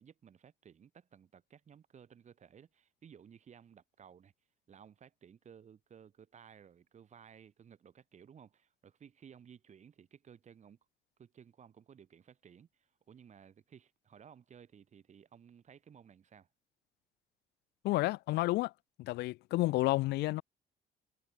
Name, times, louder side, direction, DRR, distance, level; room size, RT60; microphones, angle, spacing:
voice 1, 0.0-4.3 4.7-10.8 11.2-16.5, right 8 dB, 45° right, 7.0 m, -57 dB
voice 2, 17.8-18.7 19.0-20.4, left 19 dB, 85° left, 1.2 m, -30 dB
cardioid pair, 110°, 17 cm